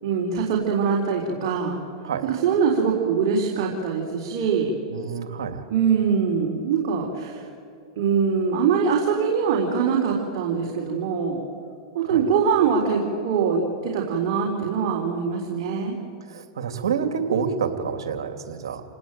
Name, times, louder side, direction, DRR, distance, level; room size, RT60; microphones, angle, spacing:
voice 1, 0.0-1.8 2.2-4.7 5.7-7.4 8.0-11.4 11.9-16.0, right 6 dB, 60° right, -1 dB, 4.1 m, -23 dB
voice 2, 4.9-5.6 12.0-12.2 16.3-18.8, right 6 dB, 85° right, 7 dB, 2.8 m, -28 dB
28.5 x 19.0 x 9.2 m, 2.4 s
hypercardioid pair, 115°, 2 cm